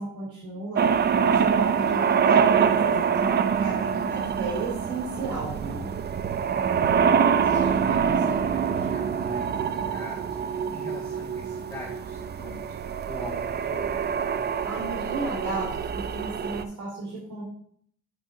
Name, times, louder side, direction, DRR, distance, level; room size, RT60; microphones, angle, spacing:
voice 1, 0.0-5.9 14.6-15.7 15.9-17.4, right 2 dB, 75° right, -5 dB, 3.2 m, -34 dB
sound 1, 0.8-16.6, right 7 dB, 35° right, 0.4 m, -25 dB
voice 2, 7.4-12.8 13.1-14.0, left 1 dB, 10° left, -7 dB, 1.8 m, -42 dB
8.4 x 6.1 x 2.7 m, 0.63 s
cardioid pair, 90°, 30 cm